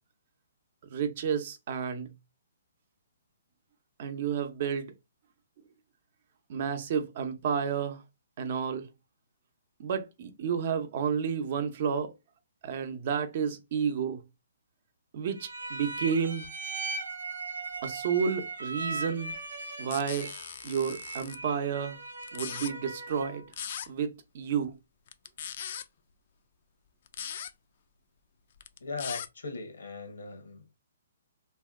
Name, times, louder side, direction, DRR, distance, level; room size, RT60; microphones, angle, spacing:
voice 1, 0.9-2.1 4.0-4.9 6.5-8.0 8.4-8.9 9.8-12.1 12.6-14.2 15.1-16.5 17.8-19.3 19.8-20.3 20.6-22.0 22.3-23.4 23.9-24.8, right 7 dB, 45° right, 0.6 m, -31 dB
sound 1, 15.3-23.5, right 3 dB, 90° right, 0.8 m, -39 dB
sound 2, 19.9-21.4 22.2-22.7 23.5-23.9 25.1-25.8 27.1-27.5 28.6-29.3, left 9 dB, 50° left, 0.3 m, -39 dB
voice 2, 28.8-30.7, left 3 dB, 85° left, 0.8 m, -39 dB
2.6 x 2.2 x 3.5 m
hypercardioid pair, 155°, 0 cm